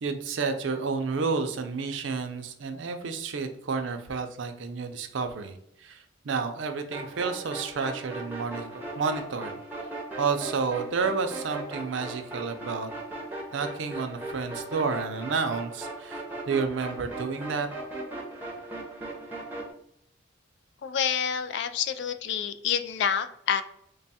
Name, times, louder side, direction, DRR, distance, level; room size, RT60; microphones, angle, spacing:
voice 1, 0.0-9.6 10.2-12.9 13.5-17.7, right 5 dB, 65° right, 6 dB, 0.5 m, -30 dB
sound 1, 6.9-19.7, right 2 dB, 10° right, 0.6 m, -38 dB
voice 2, 20.8-23.6, left 8 dB, 60° left, 10 dB, 0.3 m, -28 dB
3.3 x 2.3 x 4.1 m, 0.72 s
head